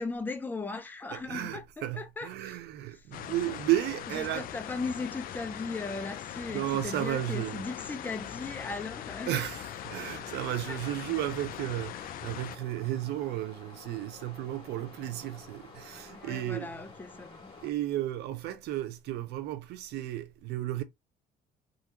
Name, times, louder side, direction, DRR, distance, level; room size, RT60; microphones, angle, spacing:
voice 1, 0.0-2.6 2.9-3.1 4.1-9.4 10.7-10.8 16.1-17.5, left 3 dB, 10° left, 0.6 m, -38 dB
voice 2, 1.1-4.5 6.5-7.7 9.3-16.7 17.6-20.8, right 14 dB, 80° right, 0.6 m, -33 dB
sound 1, 3.1-12.6, left 12 dB, 60° left, 0.4 m, -41 dB
sound 2, 3.3-17.7, left 3 dB, 30° left, 2.0 m, -51 dB
3.8 x 2.5 x 2.9 m
cardioid pair, 110°, 17 cm